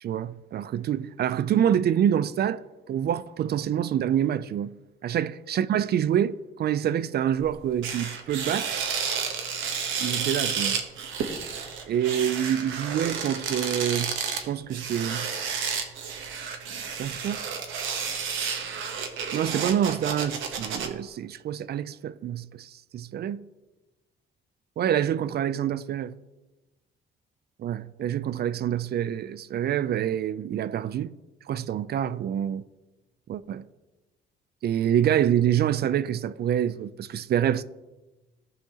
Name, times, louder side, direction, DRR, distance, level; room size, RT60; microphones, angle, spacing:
voice 1, 0.0-4.7 5.0-8.7 10.0-10.8 11.9-14.2 14.5-15.3 17.0-17.4 19.3-23.5 24.8-26.2 27.6-31.1 31.5-32.6 33.3-33.7 34.6-37.6, right 10 dB, 55° right, 0.4 m, -26 dB
sound 1, 7.3-7.5 7.8-20.9, right 6 dB, 85° right, 1.0 m, -31 dB
14.5 x 5.7 x 2.9 m
cardioid pair, 90°, 20 cm